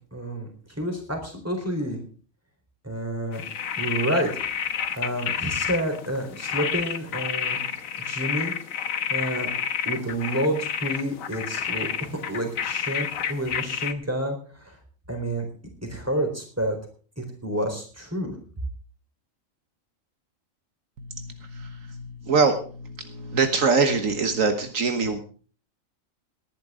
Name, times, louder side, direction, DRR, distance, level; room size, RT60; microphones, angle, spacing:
voice 1, 0.1-0.5 0.8-2.0 2.8-3.4 3.8-4.3 4.9-7.6 8.0-8.5 9.1-9.5 9.9-14.4 14.7-14.8 15.1-15.5 15.9-16.8 17.2-18.3, right 1 dB, 10° right, 3 dB, 4.1 m, -29 dB
sound 1, 3.3-13.9, left 8 dB, 80° left, 1.4 m, -30 dB
voice 2, 21.0-25.2, right 4 dB, 75° right, 7 dB, 1.6 m, -24 dB
19.0 x 10.5 x 3.8 m, 0.40 s
omnidirectional pair, 1.4 m